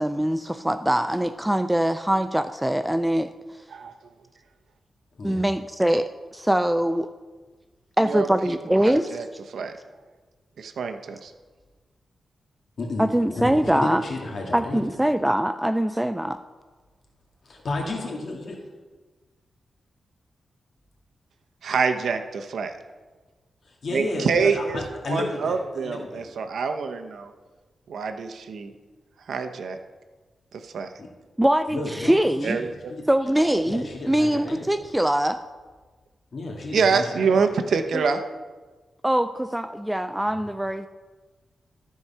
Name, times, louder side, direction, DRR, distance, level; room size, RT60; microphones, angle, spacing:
voice 1, 0.0-3.3 5.2-7.1 8.0-9.2 13.0-14.0 14.5-16.4 31.4-32.6 33.1-35.4 37.9-38.1 39.0-40.9, right 1 dB, 5° right, 10 dB, 0.3 m, -23 dB
voice 2, 8.1-9.2 9.5-9.7 10.6-11.3 21.6-22.7 23.9-24.8 25.1-27.3 27.9-28.7 29.3-29.8 30.5-30.9 32.4-32.9 36.7-38.2, right 5 dB, 80° right, 7 dB, 0.9 m, -26 dB
voice 3, 12.8-14.8 17.4-18.6 23.6-26.3 31.0-31.1 31.7-33.0 33.6-34.7 36.3-37.4 40.3-40.5, left 2 dB, 55° left, 0 dB, 2.3 m, -32 dB
14.0 x 4.8 x 5.7 m, 1.3 s
wide cardioid pair, 120°, 0 cm